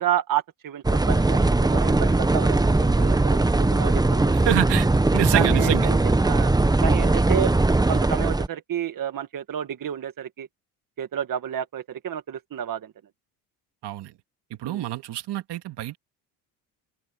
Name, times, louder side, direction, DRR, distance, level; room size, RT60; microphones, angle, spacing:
voice 1, 0.0-4.3 5.3-6.0 6.2-6.5 6.8-7.5 7.9-10.5 11.0-12.9 14.6-14.9, right 10 dB, 45° right, 1.7 m, -30 dB
sound 1, 0.8-8.5, right 2 dB, 10° right, 1.0 m, -20 dB
voice 2, 4.3-4.9 5.1-5.9 13.8-14.1 14.5-16.0, right 13 dB, 65° right, 2.3 m, -26 dB
open air
cardioid pair, 90°, 44 cm